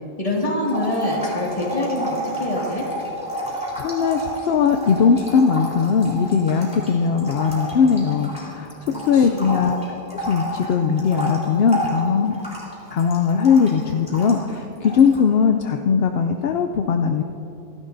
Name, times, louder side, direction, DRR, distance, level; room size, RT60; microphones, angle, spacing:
voice 1, 0.2-2.9 8.9-9.7, left 1 dB, 35° left, -3 dB, 2.2 m, -26 dB
sound 1, 0.7-8.6 8.9-14.5 14.8-15.2, equal, 5° right, 3.6 m, -30 dB
voice 2, 3.4-9.8 10.1-12.3 12.9-17.2, left 6 dB, 75° left, 6 dB, 0.8 m, -19 dB
28.0 x 11.0 x 2.6 m, 3.0 s
omnidirectional pair, 1.1 m